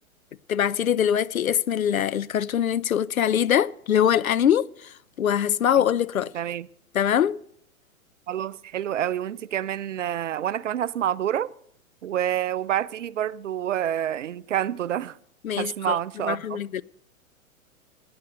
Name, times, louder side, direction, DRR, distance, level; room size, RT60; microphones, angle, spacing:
voice 1, 0.5-6.3 6.9-7.4 15.4-16.0 16.3-16.8, left 9 dB, 75° left, 0.5 m, -23 dB
voice 2, 6.3-6.7 8.3-11.5 12.0-15.2 15.6-16.6, right 11 dB, 60° right, 0.5 m, -28 dB
21.5 x 9.5 x 4.2 m
figure-of-eight pair, 105°, 43 cm